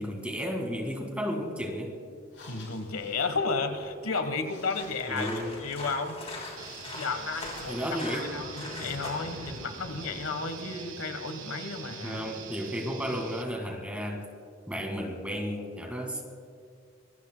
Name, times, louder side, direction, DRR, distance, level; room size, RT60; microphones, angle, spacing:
voice 1, 0.0-1.9 5.1-5.5 7.7-8.3 12.0-14.3 14.7-16.2, equal, 5° right, 2 dB, 1.7 m, -33 dB
sound 1, 2.2-8.2, left 4 dB, 55° left, 4.4 m, -53 dB
voice 2, 2.5-5.3 5.6-6.2 6.9-12.2, left 4 dB, 85° left, 8 dB, 1.2 m, -33 dB
sound 2, 4.7-10.2, left 2 dB, 30° left, 3.0 m, -42 dB
sound 3, 6.6-13.4, right 6 dB, 55° right, 1.6 m, -44 dB
25.5 x 22.0 x 2.2 m, 2.2 s
head